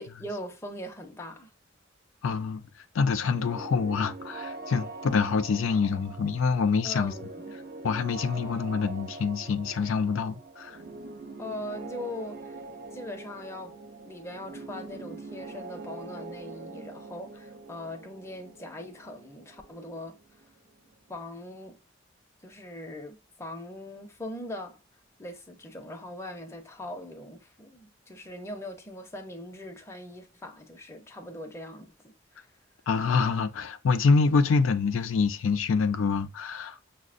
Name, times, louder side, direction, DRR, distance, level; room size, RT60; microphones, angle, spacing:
voice 1, 0.0-1.5 6.8-7.6 11.4-12.6 12.9-13.8 14.0-20.2 21.1-21.8 22.4-24.7 25.2-32.5, left 1 dB, 15° left, 0.6 m, -41 dB
voice 2, 2.2-2.6 2.9-7.1 7.8-10.8 32.9-36.8, left 5 dB, 85° left, 0.4 m, -26 dB
sound 1, 3.3-20.9, right 3 dB, 50° right, 0.4 m, -43 dB
6.2 x 2.1 x 2.4 m
head